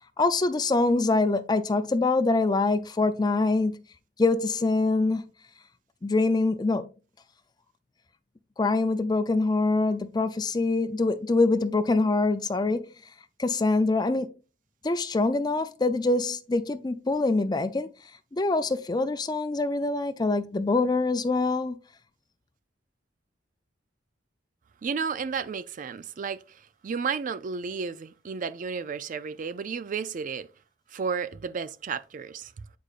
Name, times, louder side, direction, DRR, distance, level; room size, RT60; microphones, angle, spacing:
voice 1, 0.2-3.8 4.2-5.2 6.0-6.9 8.6-12.9 13.4-14.3 14.8-17.9 18.3-21.8, left 3 dB, 20° left, 0.4 m, -24 dB
voice 2, 24.8-30.5 30.9-32.5, right 5 dB, 45° right, 0.4 m, -32 dB
8.2 x 5.0 x 2.5 m
head